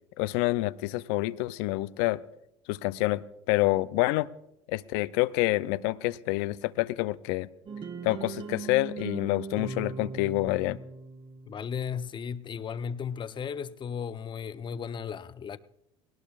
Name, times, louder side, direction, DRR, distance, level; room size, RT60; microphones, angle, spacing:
voice 1, 0.2-2.2 2.7-4.3 4.7-7.5 8.0-10.8, left 19 dB, 70° left, 0.5 m, -27 dB
sound 1, 7.6-11.6, right 5 dB, 35° right, 1.4 m, -39 dB
voice 2, 11.5-15.6, left 7 dB, 30° left, 0.7 m, -35 dB
18.5 x 18.5 x 2.4 m
hypercardioid pair, 80°, 15 cm